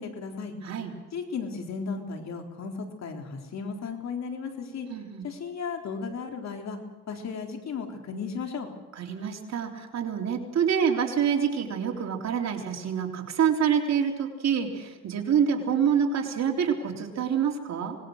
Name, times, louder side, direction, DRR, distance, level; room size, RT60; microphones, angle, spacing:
voice 1, 0.0-0.5 1.1-2.7 3.0-4.9 5.2-6.8 7.1-8.7, left 5 dB, 60° left, 4 dB, 3.8 m, -35 dB
voice 2, 0.6-0.9 4.9-5.3 9.0-18.0, right 7 dB, 60° right, 2 dB, 3.7 m, -26 dB
25.5 x 20.0 x 6.5 m, 1.2 s
cardioid pair, 90°, 30 cm